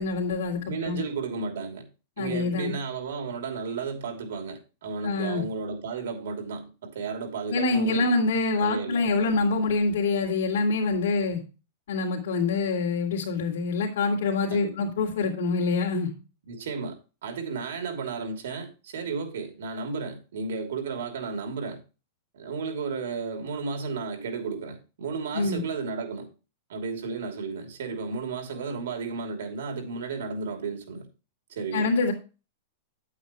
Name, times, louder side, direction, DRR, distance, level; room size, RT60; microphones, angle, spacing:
voice 1, 0.0-1.0 2.2-2.7 5.0-5.4 7.5-11.4 11.9-16.1 25.3-25.6 31.7-32.1, left 3 dB, 70° left, 2.5 m, -25 dB
voice 2, 0.6-1.9 2.2-8.2 8.6-9.0 14.5-14.8 16.5-17.0 17.2-21.8 22.3-26.3 26.7-31.1 31.5-31.9, right 4 dB, 80° right, 2.9 m, -33 dB
9.5 x 8.4 x 3.0 m
supercardioid pair, 170°, 0 cm